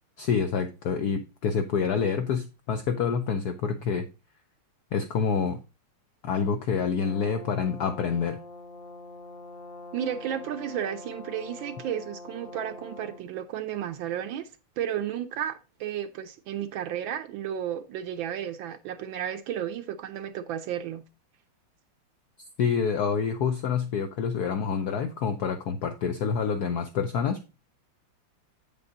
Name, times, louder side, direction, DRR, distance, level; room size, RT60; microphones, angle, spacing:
voice 1, 0.2-4.1 4.9-5.6 6.2-8.4 22.6-27.5, left 6 dB, 85° left, 0.8 m, -27 dB
Brass instrument, 7.0-13.3, left 2 dB, 50° left, 0.4 m, -44 dB
voice 2, 9.9-14.5 14.8-21.0, right 10 dB, 75° right, 1.2 m, -33 dB
8.3 x 5.3 x 3.8 m
omnidirectional pair, 2.4 m